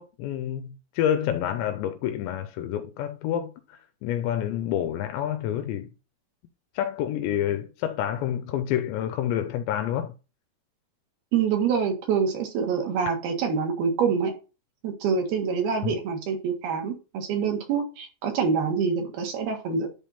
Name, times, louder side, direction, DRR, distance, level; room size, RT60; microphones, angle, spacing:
voice 1, 0.0-5.9 6.7-10.1 13.1-13.2 15.8-16.0, left 10 dB, 85° left, 2.9 m, -28 dB
voice 2, 11.3-14.3 14.8-19.9, right 6 dB, 65° right, 3.4 m, -26 dB
10.5 x 3.6 x 4.2 m
omnidirectional pair, 5.0 m